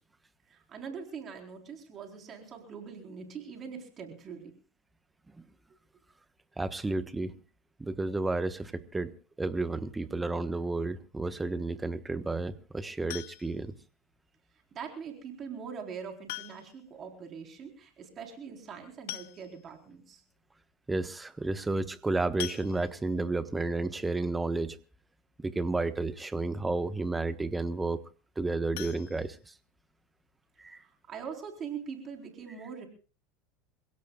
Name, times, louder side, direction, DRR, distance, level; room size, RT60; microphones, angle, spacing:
voice 1, 0.5-4.5 14.7-20.2 30.8-32.9, right 6 dB, 35° right, 4.0 m, -42 dB
voice 2, 6.6-7.4 7.8-9.1 9.4-13.7 20.9-24.8 25.4-28.0 28.4-29.5 30.6-30.8, right 3 dB, 10° right, 1.2 m, -32 dB
sound 1, 13.1-13.7 15.2-15.3 16.3-16.9 17.2-17.3 17.6-17.7 18.7-18.8 19.1-19.8 20.4-20.5 20.8-21.0 22.4-23.2 28.7-29.9 30.3-30.4 30.8-30.9 31.3-31.4, left 18 dB, 70° left, 0.7 m, -42 dB
27.5 x 17.0 x 2.4 m
hypercardioid pair, 100°, 0 cm